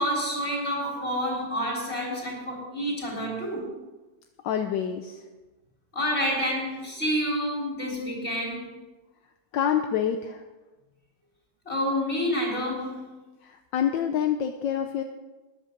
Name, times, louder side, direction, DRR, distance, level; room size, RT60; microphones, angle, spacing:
voice 1, 0.0-3.6 5.9-8.7 11.7-13.2, equal, 30° left, -2 dB, 4.0 m, -28 dB
voice 2, 4.4-5.2 9.5-10.4 13.4-15.0, left 9 dB, 75° left, 6 dB, 1.4 m, -27 dB
14.0 x 10.5 x 5.2 m, 1.1 s
omnidirectional pair, 2.1 m